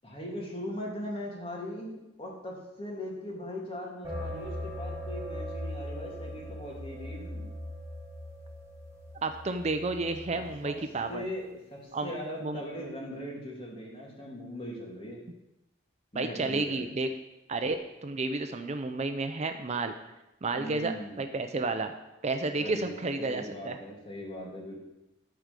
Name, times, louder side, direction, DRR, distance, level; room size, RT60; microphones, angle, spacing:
voice 1, 0.0-7.5 10.3-10.7 11.1-15.2 16.1-16.9 20.5-21.2 22.6-22.9 23.2-24.7, equal, 30° left, -2 dB, 2.6 m, -39 dB
sound 1, 4.0-10.6, equal, 15° right, 2.2 m, -39 dB
voice 2, 9.2-11.2 11.9-12.1 12.4-12.6 16.1-17.1 17.5-19.9 20.4-21.9 22.2-23.8, right 3 dB, 35° right, 7 dB, 0.5 m, -31 dB
12.5 x 4.8 x 6.7 m, 0.95 s
head